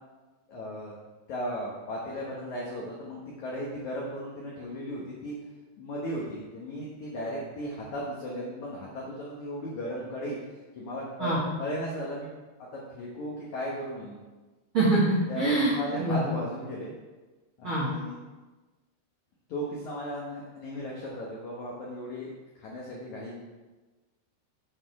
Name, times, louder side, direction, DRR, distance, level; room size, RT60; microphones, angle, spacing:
voice 1, 0.5-0.9 1.3-5.4 5.8-10.4 10.7-12.3 12.7-14.2 15.3-16.9 17.6-18.2 19.5-22.3 22.6-23.4, equal, 80° left, -4 dB, 1.6 m, -36 dB
voice 2, 14.7-15.7 16.0-16.2 17.6-17.9, right 2 dB, 60° right, -7 dB, 1.3 m, -24 dB
8.8 x 6.3 x 4.8 m, 1.2 s
omnidirectional pair, 5.4 m